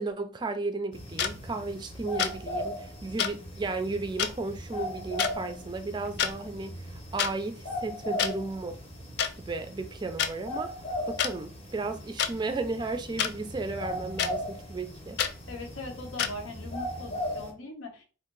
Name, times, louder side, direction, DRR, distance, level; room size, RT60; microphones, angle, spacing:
voice 1, 0.0-6.7 7.1-8.8 9.4-10.7 11.1-15.2, right 3 dB, 20° right, 0.3 m, -34 dB
sound 1, 0.9-17.5, left 1 dB, 30° left, 0.7 m, -38 dB
sound 2, 1.2-1.3 2.2-2.4 3.2-3.3 4.2-4.3 5.2-5.3 6.1-6.3 7.2-7.3 8.2-8.3 9.2-9.3 10.2-10.3 11.2-11.3 12.2-12.3 13.2-13.3 14.2-14.3 15.2-15.3 16.2-16.3, left 8 dB, 55° left, 0.3 m, -27 dB
voice 2, 15.5-18.1, left 2 dB, 90° left, 0.8 m, -40 dB
2.7 x 2.5 x 3.8 m
head